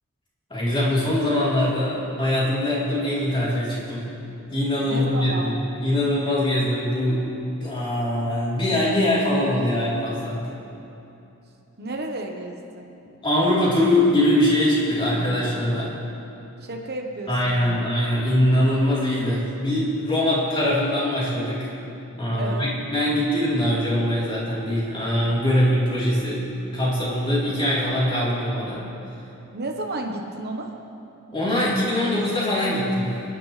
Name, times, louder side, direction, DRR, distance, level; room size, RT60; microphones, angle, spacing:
voice 1, 0.5-4.1 4.5-7.3 7.5-10.4 13.2-15.9 17.3-21.7 22.1-26.5 26.7-28.8 31.3-33.1, left 1 dB, 25° left, -7 dB, 3.7 m, -22 dB
voice 2, 4.9-5.5 11.8-12.8 16.6-17.8 22.4-22.7 29.5-30.7, right 2 dB, 50° right, 2 dB, 1.1 m, -32 dB
29.0 x 10.5 x 3.3 m, 2.9 s
head